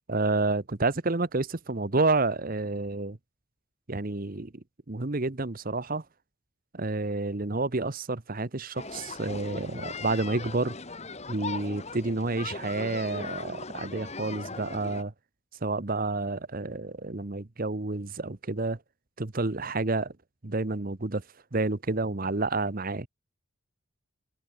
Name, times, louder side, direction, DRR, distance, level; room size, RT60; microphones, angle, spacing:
voice 1, 0.1-3.2 3.9-6.0 6.7-10.7 11.3-15.1 15.6-18.8 19.2-20.1 20.4-21.2 21.5-23.1, right 3 dB, 40° right, 1.0 m, -29 dB
sound 1, 8.7-15.0, left 4 dB, 30° left, 1.9 m, -39 dB
head